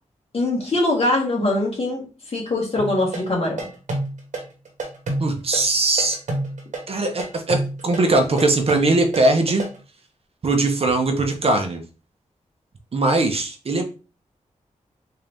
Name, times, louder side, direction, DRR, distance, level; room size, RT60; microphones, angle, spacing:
voice 1, 0.3-2.1 2.3-3.7, left 2 dB, 50° left, -2 dB, 1.7 m, -22 dB
sound 1, 2.8-9.8, right 2 dB, 70° right, 1.1 m, -28 dB
voice 2, 5.2-6.2 6.9-9.7 10.4-11.8 12.9-13.8, right 2 dB, 50° right, 5 dB, 0.7 m, -20 dB
3.7 x 2.8 x 3.4 m, 0.34 s
wide cardioid pair, 100°, 13 cm